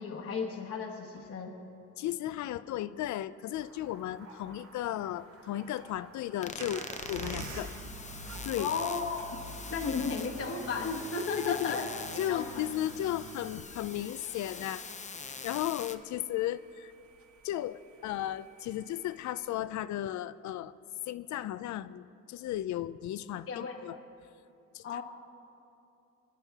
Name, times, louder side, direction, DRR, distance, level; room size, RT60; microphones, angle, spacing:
voice 1, 0.0-1.5 8.6-9.4 9.7-12.6 23.5-23.8 24.8-25.0, left 5 dB, 50° left, 0 dB, 1.2 m, -34 dB
voice 2, 2.0-7.7 8.4-8.7 11.4-11.8 12.2-14.8 15.1-16.9 17.4-20.7 21.1-24.0 24.7-24.8, left 13 dB, 70° left, 15 dB, 0.5 m, -35 dB
sound 1, 3.6-19.5, right 4 dB, 50° right, 1.5 m, -57 dB
sound 2, 6.4-16.0, left 5 dB, 25° left, 0.6 m, -44 dB
sound 3, 6.6-13.6, right 3 dB, 80° right, 1.2 m, -45 dB
23.0 x 10.0 x 3.5 m, 2.8 s
cardioid pair, 90°, 30 cm